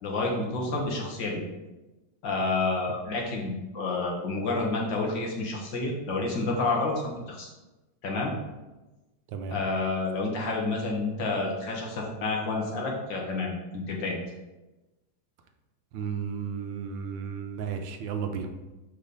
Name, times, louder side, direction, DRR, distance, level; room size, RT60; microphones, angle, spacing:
voice 1, 0.0-1.4 2.2-7.5 8.0-8.3 9.5-14.2, left 3 dB, 75° left, -1 dB, 2.0 m, -29 dB
voice 2, 15.9-18.5, right 6 dB, 85° right, 6 dB, 1.5 m, -33 dB
6.8 x 5.1 x 4.0 m, 1.1 s
omnidirectional pair, 2.0 m